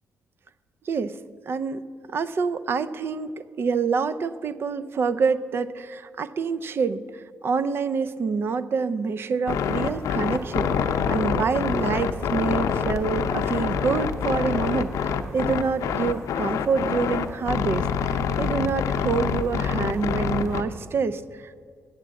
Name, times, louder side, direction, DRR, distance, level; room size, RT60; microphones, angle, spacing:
voice 1, 0.9-1.2 1.5-1.8 2.1-21.6, right 5 dB, 45° right, 14 dB, 0.4 m, -27 dB
sound 1, 9.5-20.6, left 7 dB, 90° left, 0.5 m, -26 dB
8.2 x 8.0 x 7.5 m, 2.1 s
cardioid pair, 125°, 5 cm